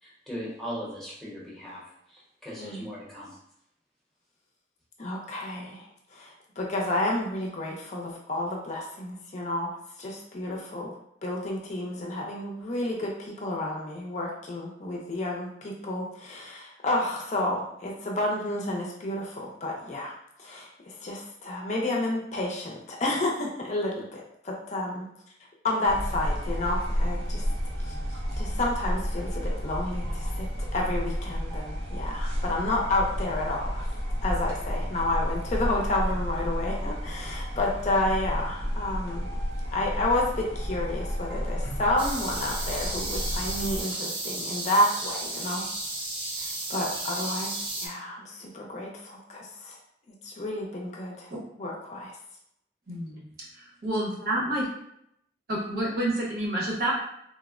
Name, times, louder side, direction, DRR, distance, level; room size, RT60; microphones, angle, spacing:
voice 1, 0.0-1.8 2.1-3.4, equal, ahead, -7 dB, 0.7 m, -38 dB
voice 2, 2.6-2.9 5.0-5.8 6.1-10.9 11.2-20.1 20.4-25.1 25.6-27.4 27.8-30.5 30.7-33.9 34.2-39.3 39.7-45.6 46.4-49.8 50.2-51.3 51.6-52.2, left 1 dB, 40° left, -2 dB, 0.5 m, -30 dB
sound 1, 25.8-43.8, equal, 80° right, 0.6 m, -31 dB
sound 2, 42.0-47.9, right 2 dB, 30° right, 0.5 m, -33 dB
voice 3, 52.9-53.2 53.5-54.6 55.5-56.9, right 1 dB, 60° right, -4 dB, 0.9 m, -29 dB
3.4 x 2.0 x 2.4 m, 0.75 s
head